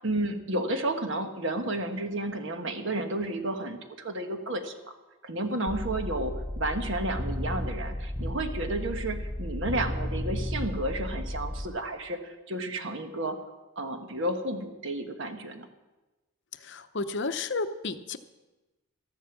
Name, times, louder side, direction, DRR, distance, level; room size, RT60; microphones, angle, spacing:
voice 1, 0.0-4.7 5.2-13.4 13.8-15.7, right 1 dB, 55° right, 6 dB, 1.3 m, -32 dB
sound 1, 5.7-11.6, left 1 dB, 5° left, 1.1 m, -33 dB
voice 2, 16.7-18.2, left 3 dB, 50° left, 10 dB, 0.7 m, -32 dB
14.0 x 11.0 x 6.1 m, 1.1 s
head